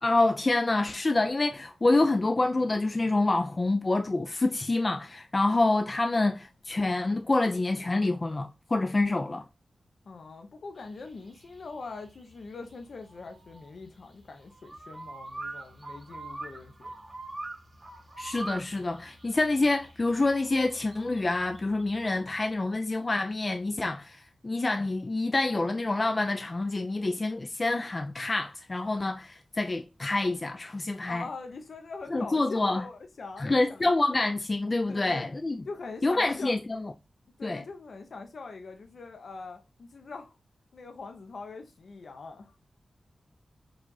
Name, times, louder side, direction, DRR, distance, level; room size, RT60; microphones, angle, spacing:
voice 1, 0.0-9.4 18.2-31.2 32.1-32.8 33.4-35.6 36.0-36.9 37.4-37.7, left 2 dB, 35° left, 0.4 m, -27 dB
voice 2, 10.0-16.9 31.1-33.9 34.9-35.3 35.6-36.6 37.4-40.3 40.7-42.5, left 4 dB, 70° left, 0.7 m, -42 dB
sound 1, 10.8-22.3, right 2 dB, 30° right, 1.6 m, -44 dB
4.8 x 2.4 x 3.9 m
wide cardioid pair, 70°, 0 cm